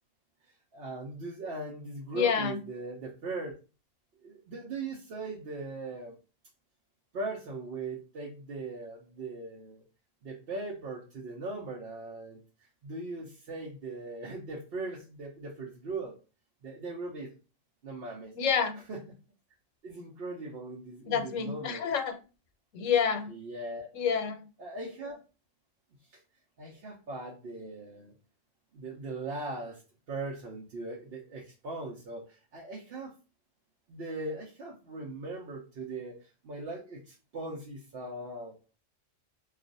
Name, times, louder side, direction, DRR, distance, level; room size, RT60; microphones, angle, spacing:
voice 1, 0.7-3.5 4.2-6.2 7.1-9.8 10.2-12.4 12.8-16.2 16.6-17.3 17.8-18.3 18.9-19.0 19.8-21.9 23.3-23.9 24.6-25.2 26.1-26.2 26.6-28.1 28.7-29.8 30.1-33.1 33.9-38.6, right 2 dB, 60° right, -3 dB, 0.8 m, -39 dB
voice 2, 2.1-2.6 18.3-18.8 21.1-22.2 22.7-23.3 23.9-24.4, left 7 dB, 90° left, 6 dB, 1.0 m, -28 dB
2.4 x 2.3 x 3.8 m, 0.32 s
omnidirectional pair, 1.3 m